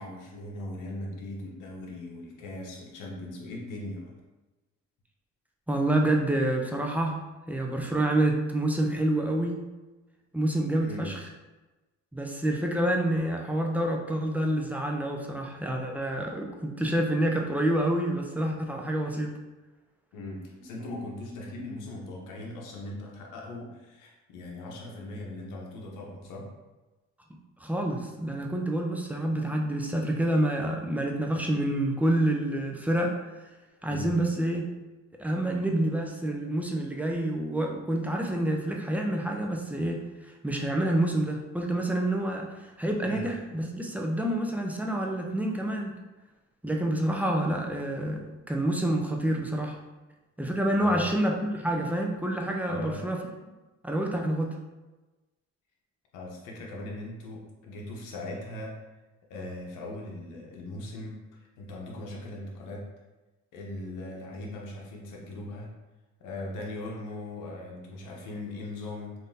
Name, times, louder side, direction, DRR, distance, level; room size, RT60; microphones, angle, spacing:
voice 1, 0.0-4.1 10.8-11.1 20.1-26.5 33.9-34.2 43.0-43.3 50.8-51.0 52.7-53.0 56.1-58.7 59.3-62.8 63.5-65.7 66.2-69.1, left 2 dB, 90° left, -2 dB, 0.8 m, -39 dB
voice 2, 5.7-7.2 7.5-9.6 10.3-11.3 12.1-19.4 27.6-33.2 33.8-34.6 35.2-45.9 46.6-49.8 50.4-53.2 53.8-54.6, right 1 dB, 5° right, 1 dB, 0.4 m, -28 dB
3.6 x 2.6 x 2.6 m, 1.1 s
cardioid pair, 90°, 30 cm